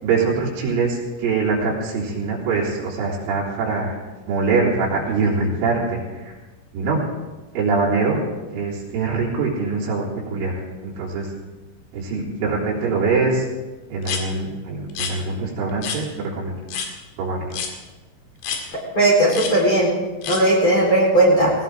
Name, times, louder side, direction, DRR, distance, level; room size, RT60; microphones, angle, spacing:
voice 1, 0.0-4.0 4.3-6.3 6.7-7.0 7.6-8.2 8.5-10.5 10.8-11.3 11.9-13.5 13.9-16.0 16.3-16.5 17.2-17.5, right 4 dB, 85° right, -6 dB, 6.1 m, -23 dB
sound 1, 14.0-14.2 14.9-15.1 15.8-16.0 16.7-16.9 17.5-17.7 18.4-18.6 19.3-19.5 20.2-20.4, left 6 dB, 70° left, 4.2 m, -28 dB
voice 2, 18.9-19.9 20.3-21.5, right 1 dB, 30° left, -5 dB, 4.8 m, -16 dB
19.5 x 19.0 x 3.8 m, 1.2 s
omnidirectional pair, 5.6 m